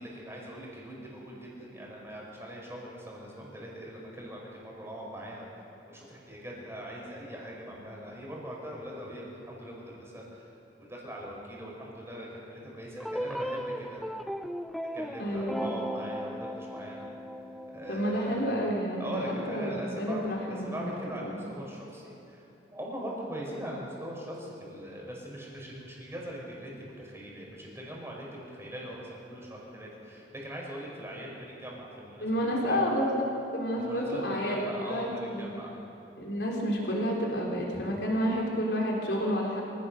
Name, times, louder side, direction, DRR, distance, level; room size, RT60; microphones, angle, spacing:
voice 1, 0.0-10.5 10.9-14.0 14.9-17.1 17.7-18.4 19.0-22.4 22.7-32.9 33.7-35.7, equal, 15° right, -3 dB, 5.1 m, -41 dB
sound 1, 13.0-18.0, equal, ahead, 0.5 m, -36 dB
voice 2, 15.2-15.7 17.9-20.9 21.2-21.5 32.2-33.2 33.5-35.5 36.2-39.6, equal, 80° left, -2 dB, 3.9 m, -30 dB
26.0 x 16.0 x 6.6 m, 2.9 s
head